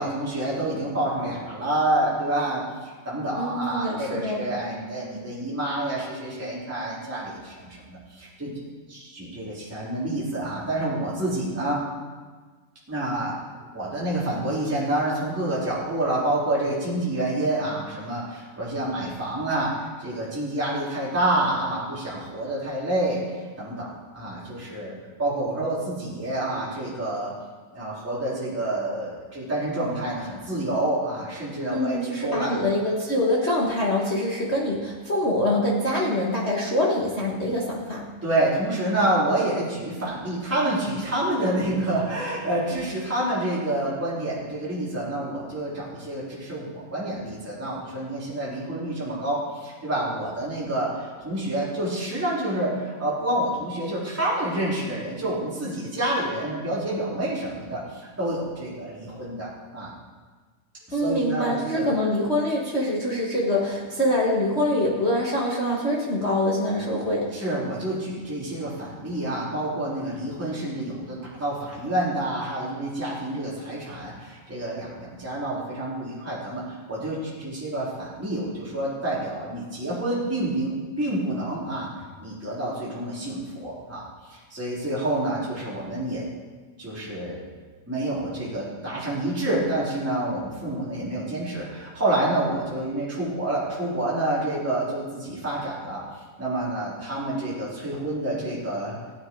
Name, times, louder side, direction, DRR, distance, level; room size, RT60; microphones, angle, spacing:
voice 1, 0.0-2.6 3.0-8.5 8.9-11.8 12.9-13.3 13.7-24.9 25.2-27.3 27.7-32.6 38.2-59.9 60.9-61.8 67.3-81.9 82.2-86.2 86.8-87.4 87.9-96.0 96.4-99.0, right 1 dB, 5° right, -8 dB, 3.6 m, -28 dB
voice 2, 3.4-4.5 31.7-38.0 60.9-67.3, left 1 dB, 55° left, -4 dB, 0.7 m, -24 dB
17.5 x 9.4 x 4.7 m, 1.4 s
omnidirectional pair, 3.8 m